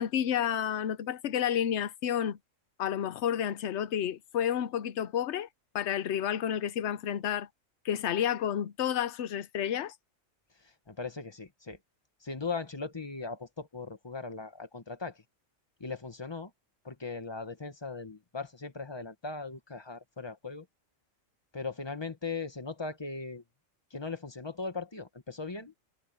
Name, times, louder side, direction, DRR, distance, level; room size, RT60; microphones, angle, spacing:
voice 1, 0.0-2.4 2.8-5.5 5.7-7.5 7.8-9.9, left 9 dB, 65° left, 1.0 m, -30 dB
voice 2, 10.9-11.8 12.2-15.2 15.8-16.5 16.8-20.7 21.5-23.4 23.9-25.7, left 4 dB, 20° left, 1.3 m, -38 dB
omnidirectional pair, 1.3 m